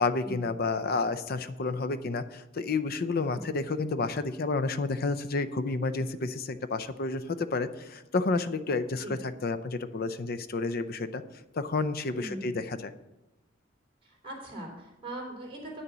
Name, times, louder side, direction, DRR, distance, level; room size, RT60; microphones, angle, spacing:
voice 1, 0.0-11.2 11.5-12.9, left 3 dB, 50° left, 12 dB, 0.6 m, -30 dB
voice 2, 12.1-12.6 14.0-15.8, right 1 dB, 30° right, -2 dB, 3.6 m, -41 dB
9.0 x 6.8 x 6.1 m, 1.0 s
head